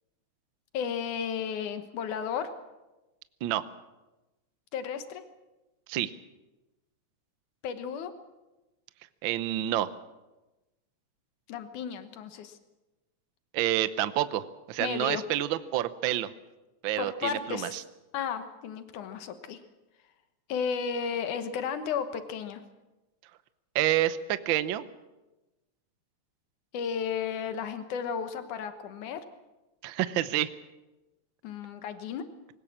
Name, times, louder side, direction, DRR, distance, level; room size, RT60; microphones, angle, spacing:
voice 1, 0.7-2.5 4.7-5.2 7.6-8.1 11.5-12.6 14.8-15.3 17.0-17.8 18.1-19.6 20.5-22.6 26.7-29.2 31.4-32.2, left 7 dB, 90° left, 9 dB, 2.8 m, -33 dB
voice 2, 9.2-9.9 13.5-16.3 16.8-17.8 23.7-24.8 29.8-30.5, right 13 dB, 80° right, 13 dB, 1.1 m, -28 dB
21.0 x 19.0 x 7.3 m, 1.1 s
omnidirectional pair, 3.4 m